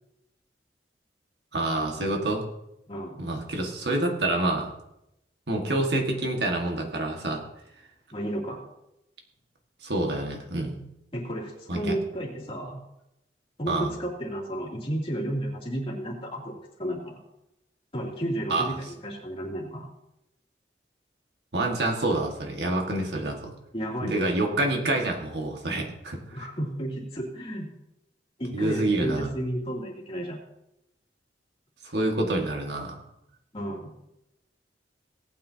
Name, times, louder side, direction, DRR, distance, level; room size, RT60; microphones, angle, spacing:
voice 1, 1.5-2.4 3.2-4.7 5.5-7.4 9.8-10.8 11.7-12.0 13.7-13.9 18.5-18.7 21.5-23.5 24.0-26.5 28.5-29.3 31.8-33.0, right 2 dB, 70° right, 1 dB, 1.8 m, -27 dB
voice 2, 8.1-8.6 11.1-12.8 13.6-17.2 17.9-19.9 23.7-24.3 26.3-27.7 28.4-30.4 33.5-33.9, right 1 dB, 30° left, -3 dB, 2.7 m, -32 dB
18.0 x 9.2 x 2.8 m, 0.86 s
head